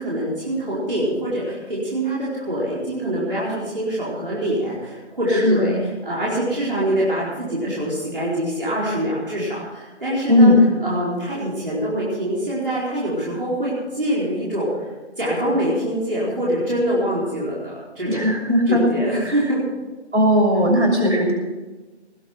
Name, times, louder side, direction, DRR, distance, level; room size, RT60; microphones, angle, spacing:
voice 1, 0.0-10.5 10.8-14.9 15.2-18.3 18.7-19.6, right 1 dB, 50° right, -7 dB, 4.5 m, -24 dB
voice 2, 10.3-10.6 18.1-18.8 19.2-19.4 20.1-21.3, left 1 dB, 75° right, -1 dB, 6.6 m, -17 dB
19.5 x 9.5 x 5.9 m, 1.2 s
figure-of-eight pair, 165°, 34 cm